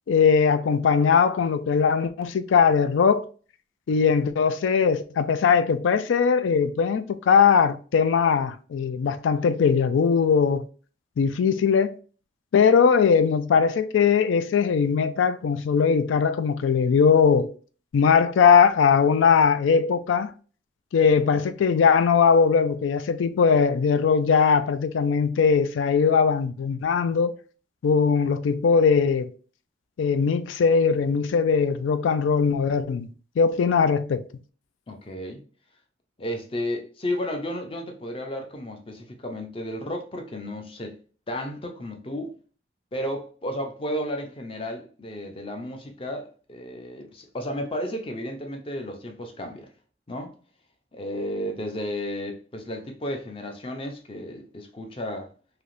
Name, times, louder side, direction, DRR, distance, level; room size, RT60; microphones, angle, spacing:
voice 1, 0.1-3.3 3.9-10.7 11.2-11.9 12.5-17.5 17.9-20.3 20.9-27.3 27.8-29.3 30.0-33.1 33.4-34.2, left 6 dB, 85° left, 0.3 m, -20 dB
voice 2, 34.9-35.4 36.2-41.0 41.3-42.3 42.9-49.7 50.1-50.3 50.9-55.3, equal, 30° left, 0.5 m, -33 dB
3.3 x 2.8 x 2.5 m
head